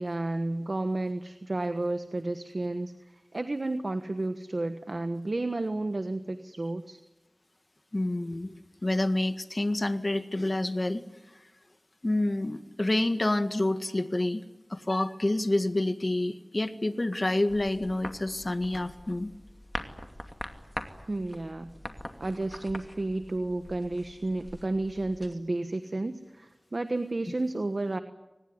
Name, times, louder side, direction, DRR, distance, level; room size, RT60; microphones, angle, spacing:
voice 1, 0.0-2.9 3.3-7.0 21.1-21.7 22.2-28.0, right 2 dB, 55° right, 9 dB, 1.3 m, -31 dB
voice 2, 7.9-8.5 8.8-11.0 12.0-14.4 14.7-19.3, left 1 dB, 45° left, 10 dB, 1.8 m, -28 dB
sound 1, 17.5-25.3, left 1 dB, 15° left, 2.5 m, -43 dB
24.0 x 20.0 x 9.7 m, 1.1 s
wide cardioid pair, 50°, 0 cm